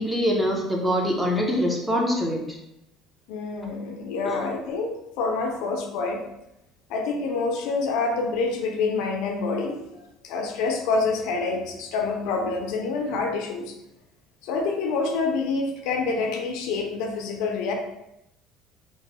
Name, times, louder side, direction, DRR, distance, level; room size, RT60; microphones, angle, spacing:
voice 1, 0.0-2.6 4.3-4.4, equal, 5° right, -1 dB, 0.6 m, -24 dB
voice 2, 3.3-6.2 6.9-9.8 10.2-13.7 14.4-17.7, left 4 dB, 75° left, 3 dB, 0.5 m, -27 dB
2.9 x 2.1 x 2.9 m, 0.83 s
cardioid pair, 120°, 0 cm